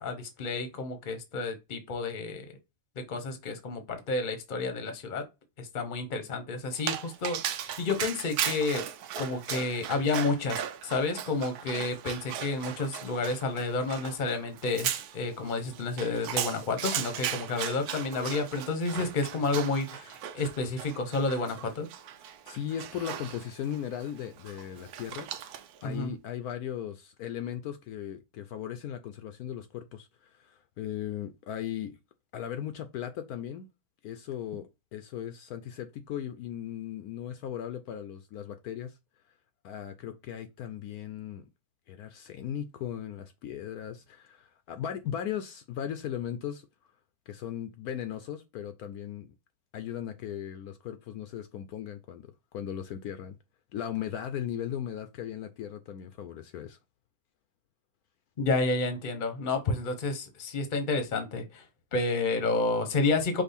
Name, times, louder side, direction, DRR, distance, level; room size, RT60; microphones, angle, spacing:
voice 1, 0.0-2.5 3.0-5.2 5.6-8.8 9.2-21.9 25.8-26.1 58.4-61.6 61.9-63.4, left 3 dB, 35° left, 0.9 m, -30 dB
Dog, 6.7-25.8, right 10 dB, 75° right, 1.1 m, -37 dB
voice 2, 22.5-25.5 25.8-32.0 32.3-33.7 34.0-38.9 39.6-41.4 41.9-46.7 47.3-49.4 49.7-52.2 52.5-53.4 53.7-56.8, left 10 dB, 70° left, 1.0 m, -37 dB
5.3 x 2.4 x 4.1 m
omnidirectional pair, 1.7 m